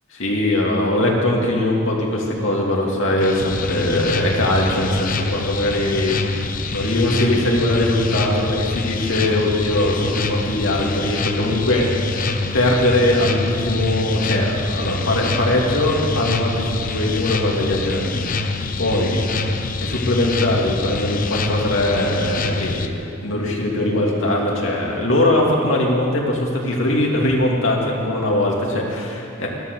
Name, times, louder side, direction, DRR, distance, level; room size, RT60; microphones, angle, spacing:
voice 1, 0.2-12.0 12.5-18.2 18.8-19.3 19.8-29.5, left 1 dB, 80° left, -2 dB, 2.7 m, -21 dB
sound 1, 3.2-22.9, left 3 dB, 45° left, 0.7 m, -25 dB
14.0 x 12.5 x 6.8 m, 2.6 s
head